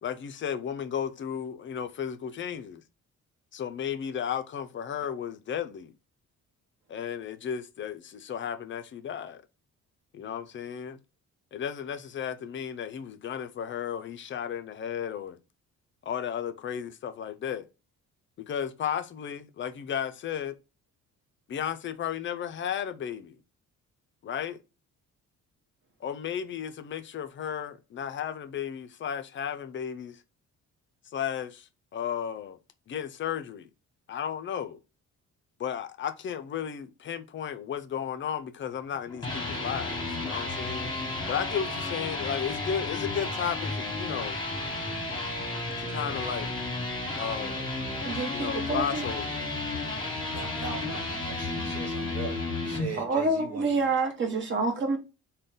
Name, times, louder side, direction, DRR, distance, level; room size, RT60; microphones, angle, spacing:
voice 1, 0.0-2.8 3.5-5.9 6.9-9.4 10.1-11.0 11.5-15.4 16.0-17.6 18.4-20.5 21.5-23.4 24.2-24.6 26.0-30.2 31.1-32.6 32.9-33.7 34.1-34.8 35.6-40.9 41.3-44.4 45.8-46.5 47.1-47.7 48.3-49.4, left 8 dB, 40° left, 0.4 m, -34 dB
sound 1, 38.9-52.9, left 2 dB, 15° left, 1.2 m, -33 dB
voice 2, 48.0-49.0 53.0-55.0, right 3 dB, 40° right, 1.0 m, -28 dB
voice 3, 50.3-53.9, right 4 dB, 55° right, 1.3 m, -40 dB
3.7 x 2.2 x 3.7 m
cardioid pair, 90°, 30 cm